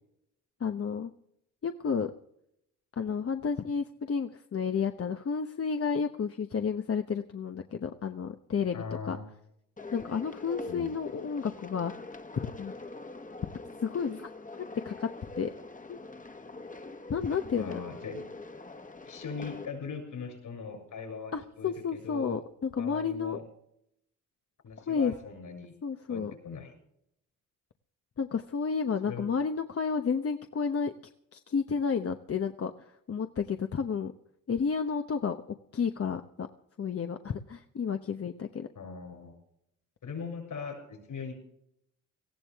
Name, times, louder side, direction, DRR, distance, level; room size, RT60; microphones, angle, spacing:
voice 1, 0.6-1.1 1.6-2.1 3.0-9.2 9.9-11.9 12.4-12.7 13.8-15.1 15.4-15.5 15.9-16.0 17.1-17.8 21.3-23.4 24.9-25.1 25.8-26.3 28.2-30.9 31.3-34.1 34.5-36.5 36.8-38.7, left 6 dB, 45° left, 6 dB, 1.0 m, -31 dB
voice 2, 8.7-9.3 10.7-10.9 17.6-18.2 19.0-22.4 22.8-23.4 24.6-25.7 26.1-26.7 29.0-29.3 38.7-39.3 40.0-41.3, left 5 dB, 65° left, 3 dB, 7.0 m, -40 dB
sound 1, 9.8-19.7, left 2 dB, 25° left, 1.5 m, -44 dB
18.5 x 14.5 x 3.6 m, 0.74 s
supercardioid pair, 65°, 33 cm